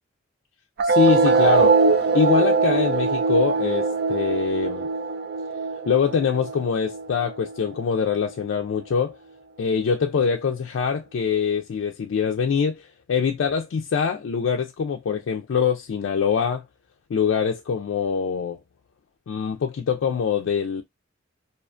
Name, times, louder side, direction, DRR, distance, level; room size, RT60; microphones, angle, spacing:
voice 1, 0.8-1.8 2.1-4.9 5.9-9.2 9.6-16.6 17.1-18.6 19.3-20.8, left 6 dB, 65° left, 0.3 m, -24 dB
sound 1, 0.8-7.8, right 4 dB, 55° right, 0.4 m, -22 dB
2.4 x 2.4 x 2.3 m
head